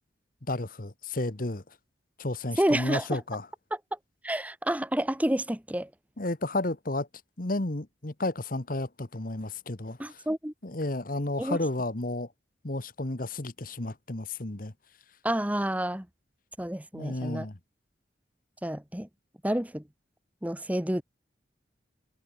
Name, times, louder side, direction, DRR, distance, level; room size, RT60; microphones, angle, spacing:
voice 1, 0.5-1.6 2.2-3.5 6.2-7.1 7.4-10.2 10.6-12.3 12.6-14.7 16.9-17.6, left 2 dB, 45° left, 1.4 m, -32 dB
voice 2, 2.6-3.0 4.2-5.9 10.0-10.5 11.4-11.6 15.2-16.1 16.6-17.5 18.6-19.1 19.4-19.8 20.4-21.0, right 1 dB, 10° right, 1.1 m, -29 dB
head